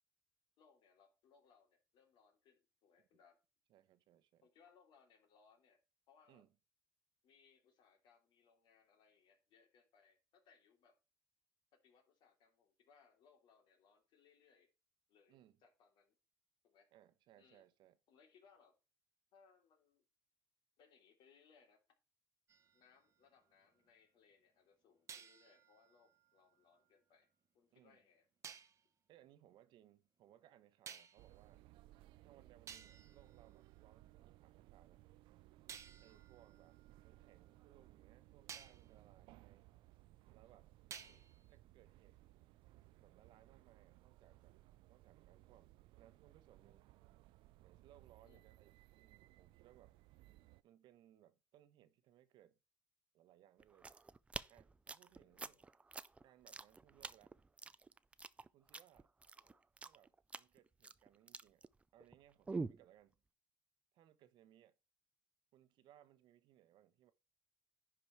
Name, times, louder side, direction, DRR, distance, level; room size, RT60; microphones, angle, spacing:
voice 1, 0.6-3.4 4.4-5.8 6.1-6.4 7.2-11.0 11.7-14.7 15.1-16.1 16.6-16.9 17.4-17.7 18.1-18.8 19.3-20.0 20.8-21.8 22.7-27.3 27.5-28.2 33.1-33.3 41.0-41.3 48.2-48.4 55.1-55.7 59.3-59.6, left 6 dB, 65° left, 3.3 m, -70 dB
voice 2, 3.7-4.5 6.3-6.5 15.3-15.6 16.9-18.0 27.7-28.0 29.1-31.6 32.2-35.0 36.0-36.8 37.0-39.7 40.3-40.7 41.5-42.2 43.0-44.6 44.9-46.9 47.6-50.0 50.6-52.6 53.1-53.9 54.5-55.6 56.2-57.4 58.5-59.1 59.8-61.6 61.9-63.2 63.9-64.7 65.5-67.1, right 12 dB, 65° right, 1.0 m, -67 dB
sound 1, 22.5-23.9 25.1-27.2 28.4-28.8 30.9-31.4 32.2-32.3 32.7-34.3 35.7-37.9 38.5-38.9 40.9-41.5, right 7 dB, 35° right, 0.9 m, -57 dB
sound 2, 31.2-50.6, right 17 dB, 85° right, 0.5 m, -63 dB
sound 3, 53.6-62.1 62.5-62.8, right 4 dB, 15° right, 0.4 m, -47 dB
10.5 x 4.9 x 4.5 m
cardioid pair, 145°, 8 cm